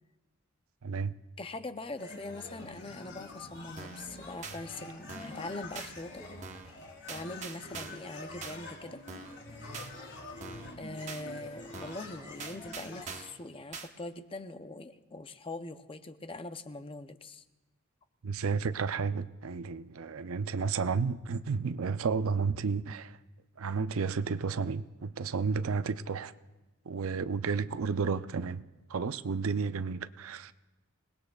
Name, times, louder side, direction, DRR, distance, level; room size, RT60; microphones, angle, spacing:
voice 1, 0.8-1.1 18.2-23.2 23.6-26.3 26.9-28.6 28.9-30.5, right 5 dB, 70° right, 0.5 m, -32 dB
voice 2, 1.4-6.2 7.1-9.0 10.8-17.4, left 2 dB, 25° left, 0.6 m, -42 dB
sound 1, 2.0-13.1, left 2 dB, 55° left, 3.3 m, -46 dB
sound 2, 3.8-4.1 4.4-4.6 5.1-5.4 5.8-5.9 6.4-6.7 7.1-8.1 8.4-8.6 9.1-9.4 9.7-9.9 10.4-10.7 11.1-11.2 11.7-12.1 12.4-13.4 13.7-13.9, right 5 dB, 30° right, 1.0 m, -43 dB
27.5 x 19.5 x 2.3 m
head